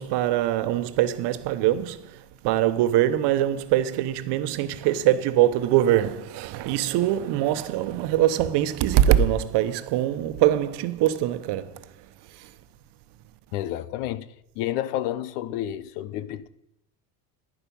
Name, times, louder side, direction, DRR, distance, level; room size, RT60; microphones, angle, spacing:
voice 1, 0.0-11.8 12.4-12.5, right 12 dB, 60° right, 1.0 m, -23 dB
voice 2, 13.5-14.3 14.6-16.5, left 12 dB, 80° left, 0.9 m, -30 dB
11.0 x 10.5 x 5.4 m
supercardioid pair, 110°, 46 cm